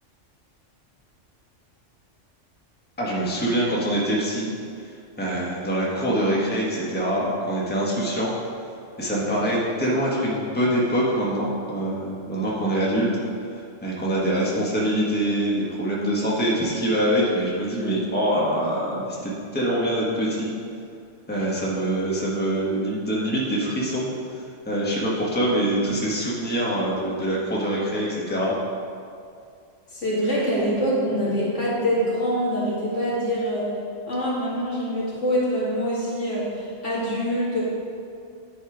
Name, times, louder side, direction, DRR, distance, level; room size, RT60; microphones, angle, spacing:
voice 1, 3.0-4.5 5.2-8.3 9.0-13.2 13.8-20.5 21.3-24.1 24.6-28.5, right 1 dB, 10° left, -6 dB, 1.3 m, -24 dB
voice 2, 29.9-33.7 34.1-37.6, equal, 75° left, -7 dB, 2.3 m, -25 dB
10.0 x 4.3 x 5.0 m, 2.4 s
omnidirectional pair, 1.3 m